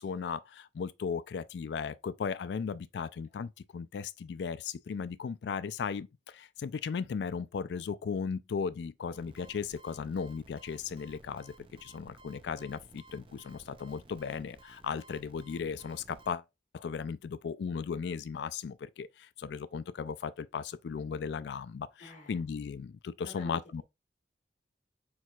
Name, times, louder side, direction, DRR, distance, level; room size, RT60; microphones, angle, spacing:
voice 1, 0.0-11.5 11.8-16.4 16.7-23.8, left 6 dB, 70° left, 0.3 m, -36 dB
sound 1, 9.1-16.3, right 2 dB, 30° right, 0.4 m, -56 dB
voice 2, 22.0-22.4 23.2-23.8, left 1 dB, 45° left, 1.5 m, -48 dB
4.6 x 4.3 x 2.3 m
head